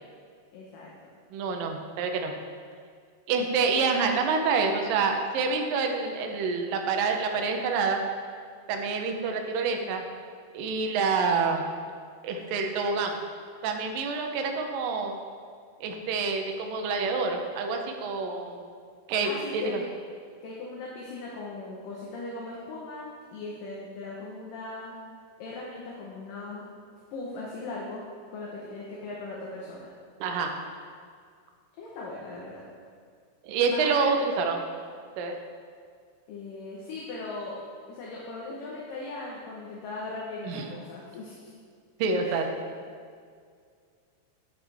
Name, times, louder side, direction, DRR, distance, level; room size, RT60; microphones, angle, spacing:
voice 1, 0.5-0.9 19.2-19.8 20.4-23.1 23.3-25.0 25.4-26.7 27.1-28.0 28.3-29.9 31.8-32.7 33.7-34.1 36.3-37.6 37.9-41.5 42.2-42.4, left 2 dB, 65° left, -4 dB, 2.5 m, -38 dB
voice 2, 1.3-2.3 3.3-8.0 8.7-10.0 10.5-11.6 12.2-13.2 13.6-15.2 15.8-18.6 19.1-19.8 30.2-30.5 33.4-34.6 35.2-35.4 40.4-40.6 42.0-42.5, right 4 dB, 70° right, 4 dB, 2.3 m, -27 dB
11.5 x 9.2 x 3.5 m, 2.1 s
omnidirectional pair, 4.7 m